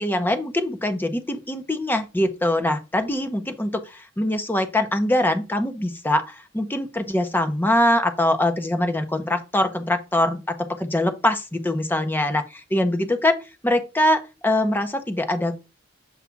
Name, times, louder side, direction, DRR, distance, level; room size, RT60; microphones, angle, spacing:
voice 1, 0.0-15.6, left 1 dB, 10° left, 0.7 m, -23 dB
7.1 x 2.4 x 5.6 m
head